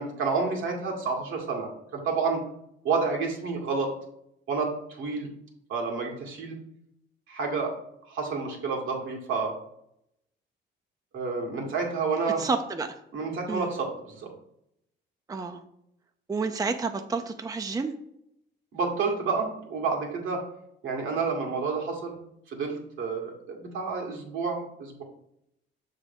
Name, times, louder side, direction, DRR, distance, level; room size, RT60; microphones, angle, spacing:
voice 1, 0.0-2.4 2.8-3.9 4.5-5.3 5.7-6.6 7.3-7.7 8.1-9.5 11.1-12.4 13.1-14.3 18.7-20.4 20.8-22.2 22.5-25.0, right 4 dB, 75° right, 1 dB, 2.0 m, -29 dB
voice 2, 12.4-13.0 13.5-13.7 15.3-15.6 16.3-17.9, right 4 dB, 20° right, 6 dB, 0.5 m, -30 dB
6.5 x 3.7 x 5.3 m, 0.76 s
cardioid pair, 90°, 20 cm